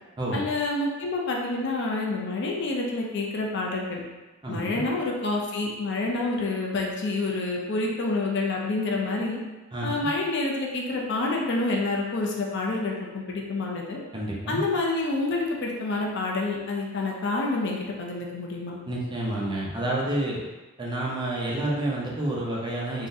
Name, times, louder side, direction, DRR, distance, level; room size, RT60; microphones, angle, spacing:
voice 1, 0.3-4.0 4.5-9.4 9.8-14.0 14.5-18.8, left 2 dB, 55° left, -1 dB, 0.5 m, -28 dB
voice 2, 4.4-4.8 9.7-10.1 14.1-14.6 18.9-20.4 20.8-23.1, right 1 dB, 20° right, -4 dB, 0.5 m, -29 dB
3.6 x 2.1 x 2.6 m, 1.1 s
head